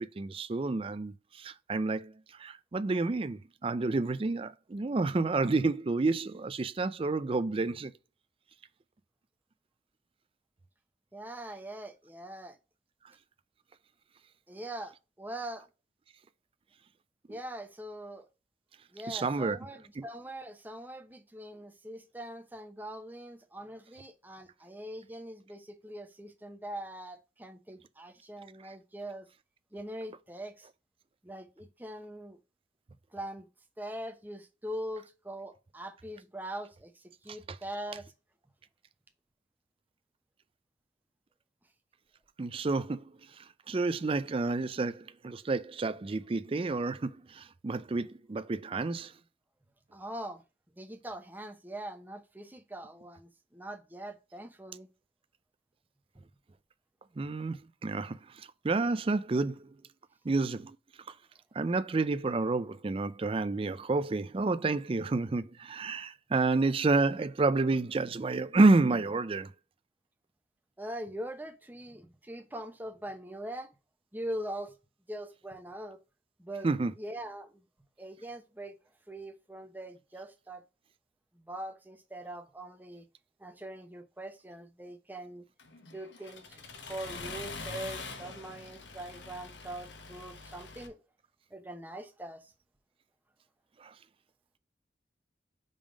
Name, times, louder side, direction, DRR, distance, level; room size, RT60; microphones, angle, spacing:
voice 1, 0.0-2.1 2.4-7.9 19.1-19.6 20.0-20.1 42.4-43.0 43.7-49.1 57.2-58.2 58.6-59.7 60.2-60.8 61.6-69.5 76.6-76.9 93.8-93.9, right 3 dB, 30° right, 0.4 m, -29 dB
voice 2, 11.1-12.6 14.5-15.7 17.3-18.3 18.9-29.3 29.7-30.7 31.2-32.4 33.1-33.5 33.8-38.1 49.9-50.4 50.8-54.9 57.2-57.3 70.8-73.7 74.1-74.7 75.1-76.0 76.4-76.7 77.0-77.6 78.0-78.7 79.1-80.6 81.4-83.1 83.4-85.4 85.9-86.6 86.9-91.0 91.5-92.5, right 1 dB, 10° right, 0.8 m, -42 dB
Accelerating revving vroom, 85.6-90.9, left 4 dB, 85° left, 1.2 m, -44 dB
5.2 x 3.6 x 4.9 m
head